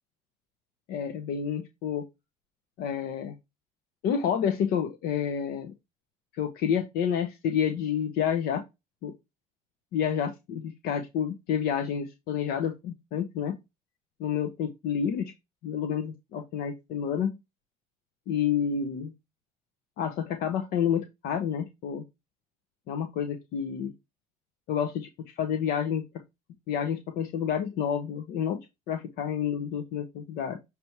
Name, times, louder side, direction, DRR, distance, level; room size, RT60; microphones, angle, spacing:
voice 1, 0.9-2.0 2.8-3.3 4.0-5.7 6.3-8.6 9.0-9.1 9.9-13.5 14.2-15.3 15.6-17.4 18.3-19.1 20.0-22.0 22.9-23.9 24.7-26.0 26.7-30.6, left 8 dB, 80° left, 1.0 m, -29 dB
6.8 x 3.5 x 4.5 m
cardioid pair, 90°, 15 cm